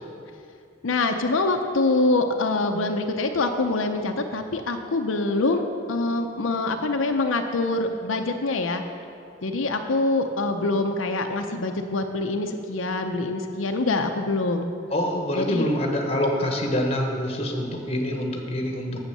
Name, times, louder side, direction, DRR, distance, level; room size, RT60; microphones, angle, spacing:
voice 1, 0.8-8.8 9.4-14.7 15.4-15.7, left 2 dB, 90° left, 5 dB, 0.7 m, -25 dB
voice 2, 14.9-19.0, left 1 dB, 30° left, 2 dB, 1.2 m, -26 dB
9.0 x 7.4 x 6.8 m, 2.4 s
head